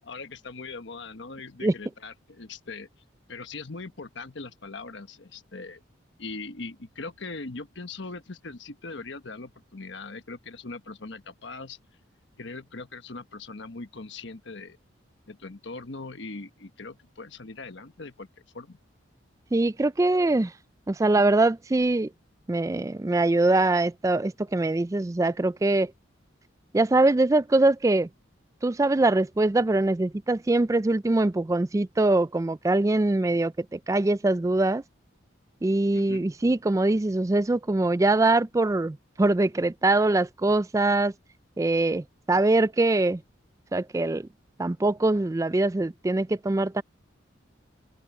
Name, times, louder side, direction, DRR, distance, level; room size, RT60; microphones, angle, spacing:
voice 1, 0.0-2.9 3.3-5.8 6.2-11.8 12.4-14.8 15.3-18.3 18.5-18.8 35.9-36.3, left 3 dB, 65° left, 1.2 m, -40 dB
voice 2, 19.5-20.5 20.9-22.1 22.5-25.9 26.7-28.1 28.6-34.8 35.6-41.1 41.6-43.2 43.7-44.3 44.6-46.8, right 2 dB, 15° right, 0.3 m, -23 dB
open air
head